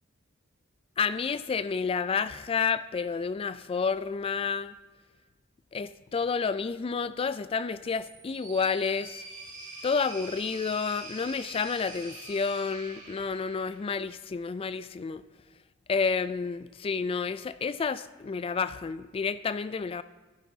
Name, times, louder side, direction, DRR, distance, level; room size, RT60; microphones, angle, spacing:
voice 1, 1.0-4.7 5.7-9.2 9.8-15.2 15.9-20.0, left 5 dB, 25° left, 14 dB, 0.3 m, -30 dB
sound 1, 7.8-14.1, right 2 dB, 40° right, 2.4 m, -45 dB
11.5 x 10.0 x 2.8 m, 1.3 s
head